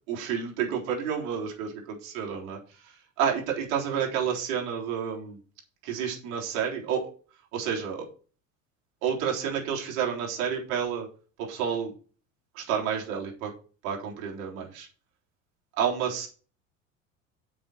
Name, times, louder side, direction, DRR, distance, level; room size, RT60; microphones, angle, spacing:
voice 1, 0.1-5.4 5.8-7.1 7.5-8.1 9.0-11.1 11.4-11.9 12.5-13.5 13.8-14.9 15.8-16.3, right 7 dB, 65° right, -1 dB, 3.9 m, -30 dB
7.8 x 6.1 x 6.3 m, 0.38 s
hypercardioid pair, 70°, 40 cm